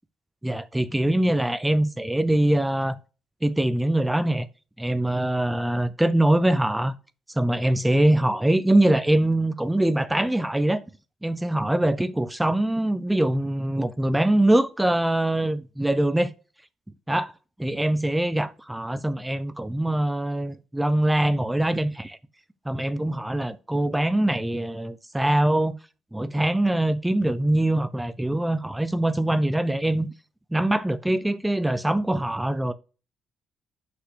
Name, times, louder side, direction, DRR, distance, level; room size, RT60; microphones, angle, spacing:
voice 1, 0.4-3.0 3.4-4.5 4.8-6.9 7.4-10.8 11.2-16.3 17.1-17.3 17.6-22.2 22.7-25.8 26.1-30.1 30.5-32.7, right 1 dB, 10° right, 0.6 m, -23 dB
6.2 x 5.7 x 6.3 m
cardioid pair, 90°, 0 cm